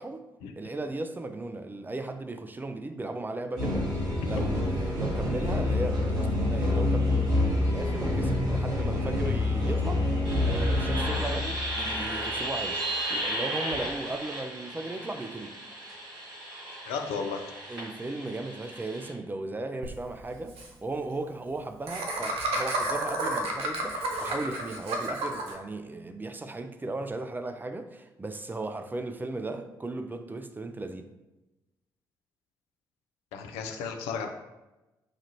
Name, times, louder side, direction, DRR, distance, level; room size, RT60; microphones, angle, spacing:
voice 1, 0.6-3.9 4.2-7.3 7.6-10.0 10.4-15.6 17.7-31.1, right 2 dB, 15° right, 0.4 m, -36 dB
sound 1, 3.5-19.1, left 1 dB, 80° right, 1.2 m, -29 dB
voice 2, 16.9-17.4 33.3-34.3, left 5 dB, 70° left, 0.4 m, -33 dB
Laughter, 19.8-19.9 20.2-20.3 20.5-20.7 21.9-25.5, right 2 dB, 65° right, 0.6 m, -31 dB
5.9 x 2.4 x 2.8 m
figure-of-eight pair, 40°, 11 cm